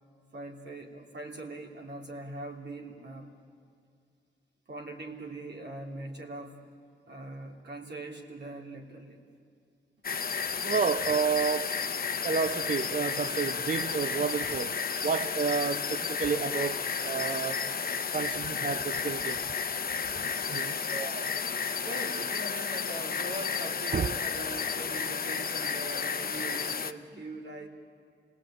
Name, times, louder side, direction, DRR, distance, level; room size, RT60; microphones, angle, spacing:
voice 1, 0.3-3.3 4.7-6.6 7.1-9.2 21.8-27.7, right 2 dB, 65° right, 3.0 m, -41 dB
sound 1, 10.0-26.9, left 6 dB, 50° left, 0.8 m, -32 dB
voice 2, 10.6-11.8 12.2-17.7 18.1-19.4 20.2-21.4 23.9-24.1, right 5 dB, 45° right, 0.6 m, -31 dB
28.5 x 18.5 x 8.8 m
wide cardioid pair, 95°, 19 cm